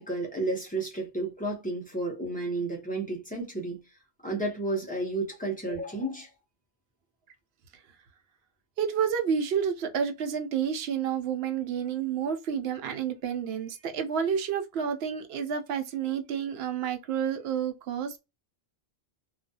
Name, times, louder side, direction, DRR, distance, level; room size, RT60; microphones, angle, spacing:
voice 1, 0.0-3.8 4.2-6.3, right 2 dB, 10° left, 0.7 m, -32 dB
voice 2, 8.8-18.2, right 7 dB, 80° right, 0.8 m, -30 dB
2.4 x 2.2 x 2.6 m
omnidirectional pair, 1.1 m